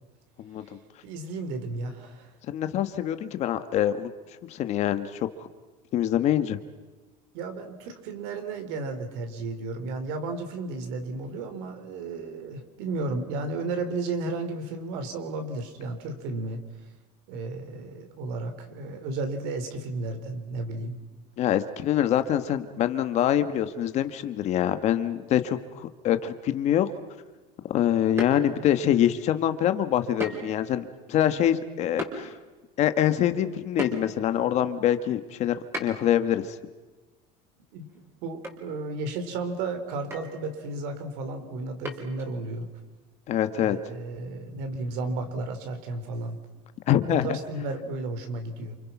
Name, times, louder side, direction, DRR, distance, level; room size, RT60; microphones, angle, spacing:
voice 1, 1.0-2.3 7.3-16.6 17.3-21.0 37.7-37.9 38.2-42.7 43.6-46.4 47.1-48.8, right 3 dB, 55° right, 7 dB, 4.4 m, -33 dB
voice 2, 2.5-4.1 4.5-5.3 5.9-6.6 21.4-26.9 27.7-32.3 32.8-36.6 43.3-43.8 46.9-47.4, left 11 dB, 35° left, 10 dB, 1.3 m, -25 dB
sound 1, 28.2-28.8 30.2-30.6 30.9-31.0 32.0-32.2 33.8-34.3 35.7-36.2 37.9-38.0 38.4-38.6 38.9-39.0 40.1-40.4 41.8-42.3, equal, 10° right, 4.4 m, -34 dB
29.0 x 28.5 x 6.0 m, 1.2 s
cardioid pair, 170°, 20 cm